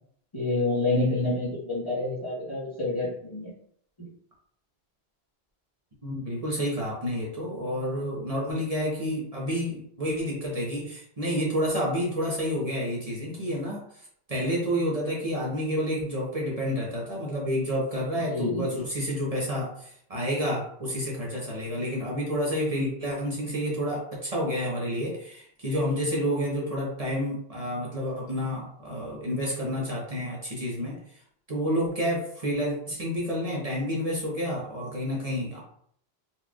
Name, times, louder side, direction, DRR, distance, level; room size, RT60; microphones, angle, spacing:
voice 1, 0.3-3.5 4.0-4.1 18.3-18.8, left 2 dB, 30° left, -9 dB, 1.4 m, -28 dB
voice 2, 6.0-13.8 14.3-31.0 31.5-35.6, equal, 35° right, -4 dB, 1.1 m, -29 dB
4.2 x 3.2 x 2.4 m, 0.65 s
omnidirectional pair, 1.1 m